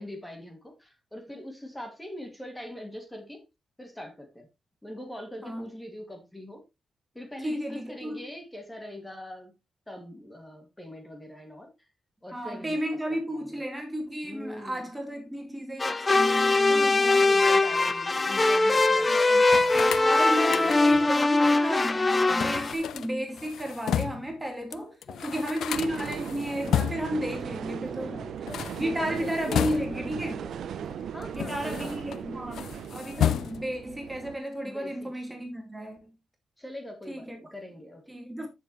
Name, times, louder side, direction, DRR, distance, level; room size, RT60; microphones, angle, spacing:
voice 1, 0.0-3.4 3.8-4.5 4.8-6.6 7.1-9.5 9.9-11.7 12.2-12.8 13.4-13.6 14.2-14.9 16.7-21.2 24.8-25.5 27.9-30.6 31.1-32.1 34.6-35.4 36.6-38.0, left 1 dB, 10° left, 2.4 m, -42 dB
voice 2, 7.4-8.2 12.3-17.3 20.0-24.9 25.2-28.2 28.8-30.5 31.3-36.0 37.1-37.4 38.1-38.5, equal, 10° right, 2.2 m, -33 dB
sound 1, 15.8-22.7, left 2 dB, 25° left, 0.8 m, -22 dB
sound 2, 19.5-21.1 22.4-24.3 24.7-24.8 25.0-27.2 28.3-30.2 30.9-32.2 32.5-33.8, left 10 dB, 85° left, 0.4 m, -32 dB
sound 3, 25.7-34.4, right 8 dB, 75° right, 0.7 m, -38 dB
10.0 x 7.2 x 3.2 m
cardioid pair, 120°, 0 cm